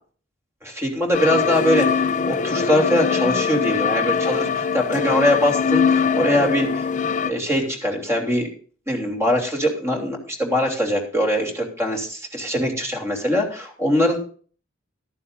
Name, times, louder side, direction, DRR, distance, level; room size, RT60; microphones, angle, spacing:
voice 1, 0.6-6.9 7.2-8.5 8.9-14.2, equal, 15° right, 1 dB, 3.0 m, -22 dB
sound 1, 1.1-7.3, left 6 dB, 40° left, 0.6 m, -22 dB
14.5 x 12.5 x 2.7 m, 0.42 s
head